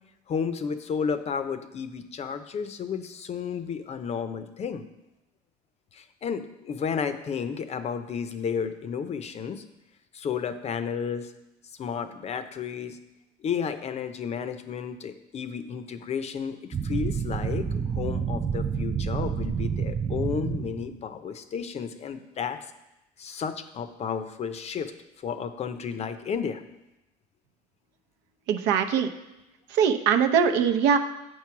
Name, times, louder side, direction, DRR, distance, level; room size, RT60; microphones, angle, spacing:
voice 1, 0.3-4.8 5.9-9.6 10.1-11.3 11.8-13.0 13.4-16.6 16.8-22.6 23.2-24.9 25.2-26.6, left 6 dB, 35° left, 10 dB, 0.6 m, -32 dB
sound 1, 16.7-21.0, right 6 dB, 15° right, 0.4 m, -29 dB
voice 2, 28.5-29.1 29.8-31.0, right 7 dB, 75° right, 7 dB, 0.7 m, -21 dB
7.9 x 4.7 x 5.9 m, 0.94 s
cardioid pair, 115°, 19 cm